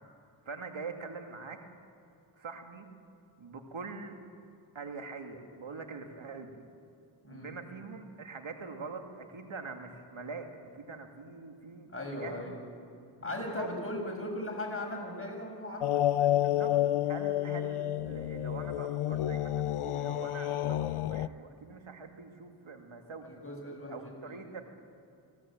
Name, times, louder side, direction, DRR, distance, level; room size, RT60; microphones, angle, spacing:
voice 1, 0.5-1.6 2.4-2.9 3.4-4.2 4.7-6.6 7.3-12.5 13.2-13.8 16.3-16.7 17.0-23.4 23.9-24.7, right 4 dB, 70° right, 5 dB, 2.6 m, -44 dB
voice 2, 7.2-7.6 11.9-12.6 13.2-16.4 23.2-24.4, left 1 dB, 25° left, 0 dB, 7.1 m, -38 dB
sound 1, 15.8-21.3, left 12 dB, 85° left, 0.6 m, -30 dB
25.5 x 17.0 x 8.9 m, 2.7 s
cardioid pair, 45°, 49 cm